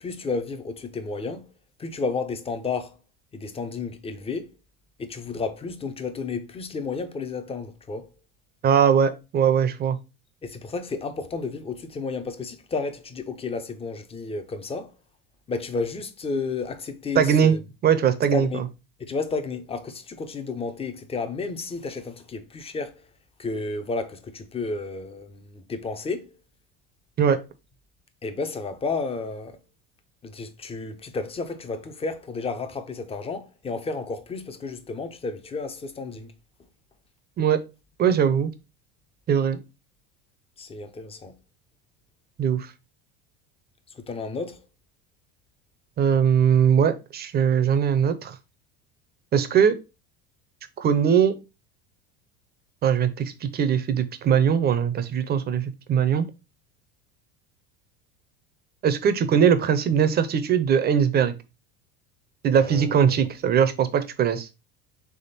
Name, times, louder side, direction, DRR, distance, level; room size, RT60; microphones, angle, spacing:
voice 1, 0.0-1.5 1.8-3.0 3.3-4.5 5.0-8.1 10.4-14.9 15.5-17.6 18.3-18.6 19.0-23.0 23.4-26.3 28.2-29.6 30.2-36.3 40.6-41.4 44.0-44.6 62.6-63.2, left 4 dB, 20° left, 0.7 m, -32 dB
voice 2, 8.6-10.0 17.1-17.6 17.8-18.5 27.2-27.4 37.4-37.6 38.0-38.5 39.3-39.6 42.4-42.7 46.0-48.3 49.3-49.8 50.8-51.3 52.8-56.3 58.8-61.4 62.4-64.5, right 8 dB, 30° right, 0.7 m, -21 dB
3.6 x 3.4 x 4.1 m
supercardioid pair, 115°, 32 cm